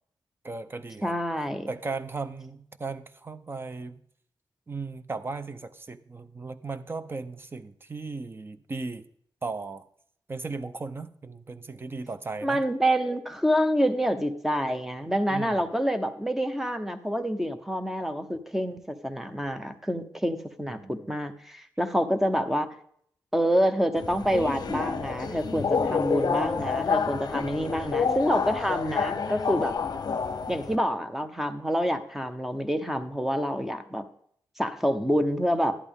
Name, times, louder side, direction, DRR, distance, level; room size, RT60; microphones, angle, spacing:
voice 1, 0.4-1.1 1.7-4.0 4.7-9.0 9.4-9.8 10.3-12.6 15.3-15.7 20.7-21.1, right 3 dB, 30° right, 12 dB, 0.7 m, -36 dB
voice 2, 1.0-1.7 12.4-22.7 23.3-29.8 30.5-34.0 34.6-35.8, equal, 5° right, 8 dB, 0.8 m, -27 dB
Subway metro underground, 24.0-30.7, left 5 dB, 55° left, 0.8 m, -29 dB
11.0 x 11.0 x 3.6 m, 0.65 s
wide cardioid pair, 135°, 8 cm